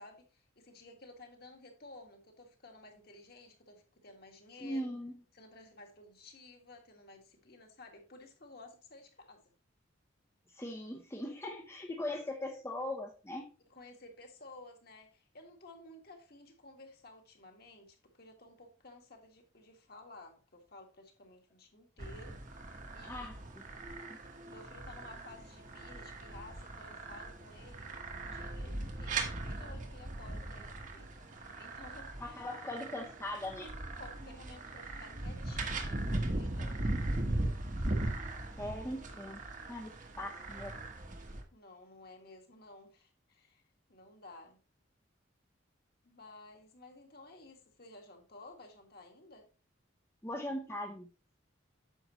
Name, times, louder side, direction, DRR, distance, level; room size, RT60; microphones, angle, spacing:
voice 1, 0.0-4.9 5.3-9.5 13.7-22.4 22.9-23.3 23.7-24.0 24.5-32.4 32.9-33.1 34.0-37.2 41.5-44.6 46.0-49.5, left 2 dB, 50° left, 1.7 m, -54 dB
voice 2, 4.6-5.1 10.5-13.5 23.0-23.6 24.1-24.2 32.2-33.7 38.6-39.4 39.7-40.8 50.2-51.1, left 1 dB, 15° left, 0.8 m, -40 dB
sound 1, 22.0-41.4, right 2 dB, 40° right, 1.1 m, -39 dB
9.0 x 6.7 x 3.0 m
head